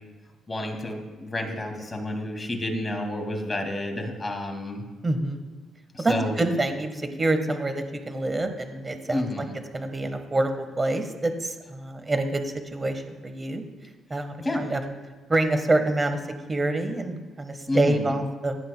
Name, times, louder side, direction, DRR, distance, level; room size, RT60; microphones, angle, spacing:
voice 1, 0.5-4.8 5.9-6.3 9.1-9.5 14.4-14.7 17.7-18.2, left 1 dB, 20° left, 2 dB, 2.2 m, -30 dB
voice 2, 5.0-5.4 6.0-9.4 9.7-13.6 14.1-14.8 15.3-16.2 16.5-18.6, right 2 dB, 25° right, 7 dB, 1.3 m, -26 dB
15.5 x 10.0 x 2.2 m, 1.2 s
cardioid pair, 90°, 0 cm